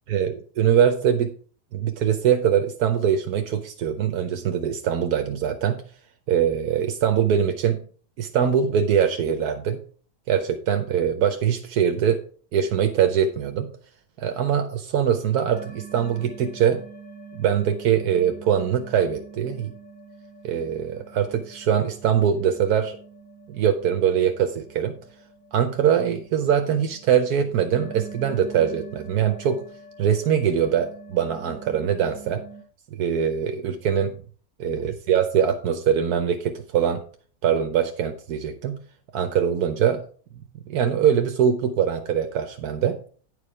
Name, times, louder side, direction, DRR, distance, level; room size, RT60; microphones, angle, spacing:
voice 1, 0.1-1.3 1.7-5.8 6.3-7.8 8.2-9.8 10.3-12.2 12.5-13.7 14.2-16.8 17.3-19.7 20.4-23.0 23.5-25.0 25.5-29.6 30.0-32.4 32.9-34.2 34.6-37.0 37.4-38.8 39.1-40.0 40.7-43.1, right 8 dB, 80° right, 6 dB, 1.3 m, -22 dB
sound 1, 15.5-32.6, right 4 dB, 75° left, 4.7 m, -44 dB
9.8 x 4.9 x 4.8 m, 0.43 s
omnidirectional pair, 1.6 m